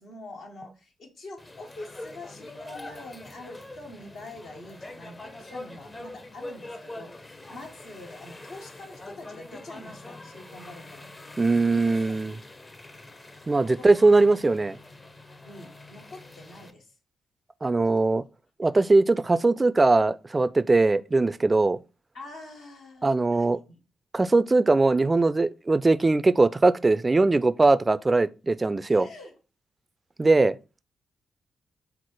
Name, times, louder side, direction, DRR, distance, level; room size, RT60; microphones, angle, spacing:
voice 1, 0.0-11.1 11.7-12.2 13.6-13.9 15.4-16.9 18.7-18.8 22.1-23.8 28.9-29.3, left 2 dB, 75° left, 1.1 m, -45 dB
sound 1, 1.4-16.7, left 2 dB, 30° left, 0.6 m, -44 dB
voice 2, 11.4-12.4 13.5-14.8 17.6-18.2 18.6-21.8 23.0-23.6 24.1-29.1 30.2-30.6, right 3 dB, 30° right, 0.3 m, -21 dB
4.5 x 2.0 x 4.4 m
hypercardioid pair, 45°, 0 cm